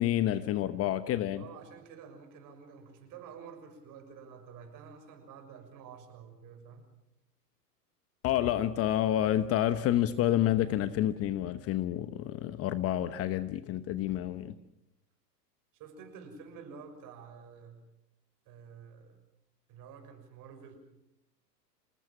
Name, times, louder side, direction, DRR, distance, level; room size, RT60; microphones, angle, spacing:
voice 1, 0.0-1.4 8.2-14.5, left 12 dB, 30° left, 1.0 m, -29 dB
voice 2, 1.4-6.8 15.7-17.8 18.4-19.2 19.7-20.8, right 6 dB, 40° right, 6.6 m, -49 dB
27.5 x 19.5 x 7.4 m
hypercardioid pair, 110°, 49 cm